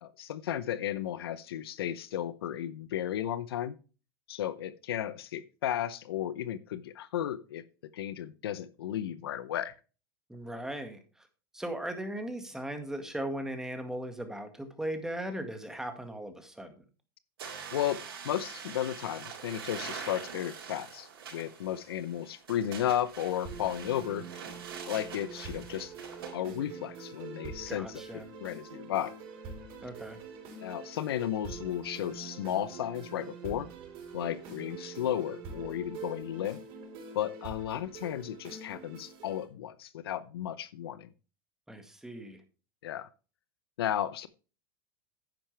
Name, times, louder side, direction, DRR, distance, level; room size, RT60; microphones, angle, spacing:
voice 1, 0.0-3.8 4.3-7.6 7.9-9.7 17.7-18.0 18.2-24.3 24.9-25.9 26.3-27.9 28.4-29.1 30.6-33.7 34.1-36.6 37.1-41.1 42.8-43.1 43.8-44.3, left 11 dB, 85° left, 16 dB, 0.7 m, -34 dB
voice 2, 10.3-11.3 11.5-16.8 27.7-28.3 29.8-30.2 41.7-42.4, right 1 dB, 5° right, 6 dB, 1.9 m, -38 dB
sound 1, 17.4-26.4, right 6 dB, 85° right, 4.0 m, -44 dB
sound 2, 23.4-39.4, right 5 dB, 45° right, 4.2 m, -45 dB
10.0 x 8.9 x 3.4 m, 0.35 s
supercardioid pair, 120°, 12 cm